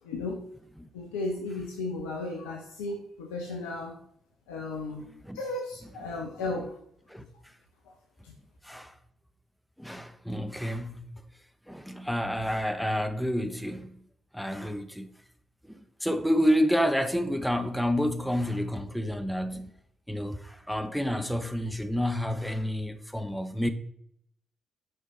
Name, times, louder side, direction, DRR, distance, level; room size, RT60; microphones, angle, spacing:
voice 1, 0.0-0.4 0.9-4.0 4.5-5.0 5.3-6.7 8.2-8.3, left 2 dB, 70° left, 1.0 m, -34 dB
voice 2, 8.6-8.9 9.8-11.2 11.7-14.0 14.3-15.1 15.6-19.8 20.1-23.7, equal, ahead, 1.0 m, -29 dB
9.2 x 5.5 x 4.1 m
figure-of-eight pair, 45°, 0 cm